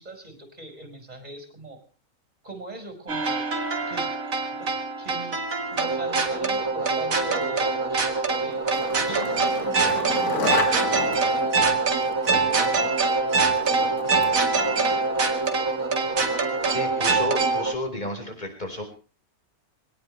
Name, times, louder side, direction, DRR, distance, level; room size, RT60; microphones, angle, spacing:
voice 1, 0.0-1.8 2.4-3.4 3.9-4.1 4.6-4.7 5.0-5.4 5.7-8.6 9.0-11.8 12.2-13.9, right 2 dB, 25° right, 5 dB, 5.6 m, -41 dB
sound 1, 3.1-17.7, right 3 dB, 65° right, 2.6 m, -24 dB
Skateboard, 8.3-16.6, left 4 dB, 85° left, 3.0 m, -35 dB
voice 2, 16.6-18.8, left 1 dB, 30° left, 4 dB, 5.0 m, -32 dB
23.0 x 18.0 x 3.3 m, 0.37 s
omnidirectional pair, 1.6 m